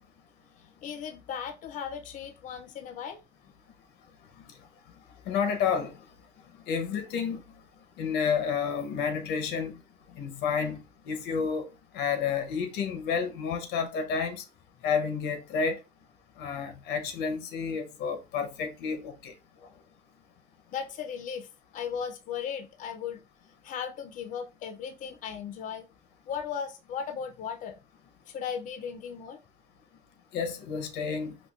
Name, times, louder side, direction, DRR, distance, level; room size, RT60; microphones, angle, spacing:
voice 1, 0.6-3.2 20.7-21.5 21.7-23.2 23.6-25.9 26.3-27.8 28.3-29.4, left 7 dB, 50° left, 0.4 m, -36 dB
voice 2, 5.3-5.9 6.7-7.4 8.0-9.8 10.1-11.7 11.9-14.4 14.8-15.8 16.4-19.3 30.3-31.4, left 6 dB, 85° left, 0.7 m, -30 dB
4.3 x 2.5 x 2.3 m
cardioid pair, 110°, 17 cm